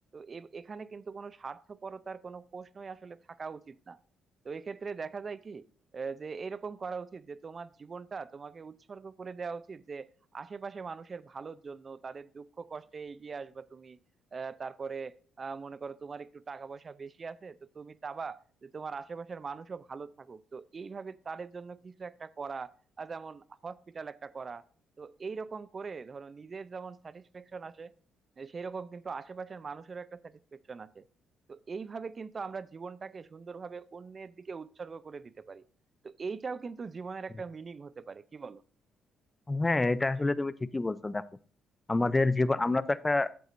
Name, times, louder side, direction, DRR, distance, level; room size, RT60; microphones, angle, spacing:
voice 1, 0.1-4.0 4.4-5.6 5.9-14.0 14.3-22.7 23.0-24.6 25.0-27.9 28.4-31.0 31.5-35.6 36.0-38.6, right 5 dB, 40° right, 18 dB, 0.5 m, -41 dB
voice 2, 39.5-41.2 41.9-43.3, left 2 dB, 20° left, 17 dB, 0.5 m, -27 dB
12.5 x 7.9 x 2.6 m, 0.43 s
supercardioid pair, 75°, 0 cm